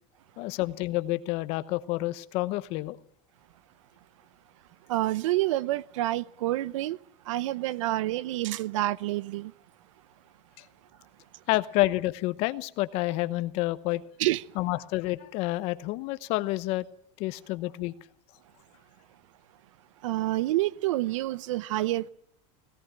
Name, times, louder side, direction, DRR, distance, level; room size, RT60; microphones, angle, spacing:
voice 1, 0.4-3.0 11.5-14.0 14.6-16.9 17.2-17.9, left 18 dB, 40° left, 0.9 m, -29 dB
voice 2, 4.9-7.0 7.3-9.5 14.2-14.4 20.0-22.1, right 16 dB, 90° right, 0.8 m, -28 dB
19.0 x 17.5 x 8.9 m
supercardioid pair, 175°, 16 cm